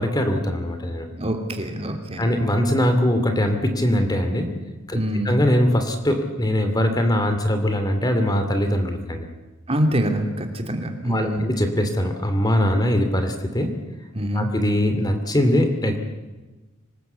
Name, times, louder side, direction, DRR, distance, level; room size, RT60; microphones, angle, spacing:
voice 1, 0.0-1.1 2.2-4.6 4.9-5.0 5.2-9.3 11.0-13.8 14.3-16.0, equal, 20° left, 7 dB, 2.6 m, -21 dB
voice 2, 1.1-2.2 4.9-5.3 9.7-11.4 12.7-12.8 14.1-14.5, equal, 30° right, 4 dB, 2.9 m, -25 dB
26.0 x 19.5 x 8.2 m, 1.2 s
head